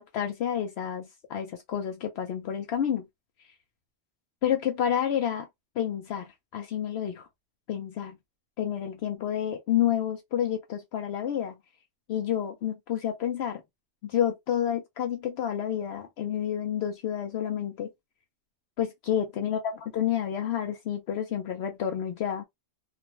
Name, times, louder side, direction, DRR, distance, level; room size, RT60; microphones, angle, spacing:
voice 1, 0.0-3.1 4.4-5.5 5.8-7.3 7.7-8.2 8.6-11.6 12.1-13.6 14.0-17.9 18.8-19.6 19.9-22.4, left 9 dB, 70° left, 0.8 m, -29 dB
2.5 x 2.1 x 2.9 m
omnidirectional pair, 1.1 m